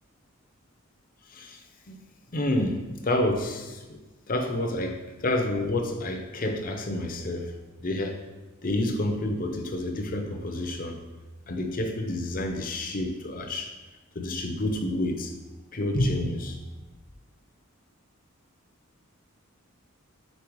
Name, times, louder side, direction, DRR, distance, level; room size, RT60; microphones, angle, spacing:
voice 1, 1.3-1.6 1.9-2.0 2.3-4.0 4.3-7.5 7.8-8.2 8.6-11.0 11.5-13.7 14.1-15.3 15.7-16.6, left 1 dB, 40° left, 4 dB, 0.7 m, -29 dB
5.4 x 4.3 x 4.6 m, 1.2 s
head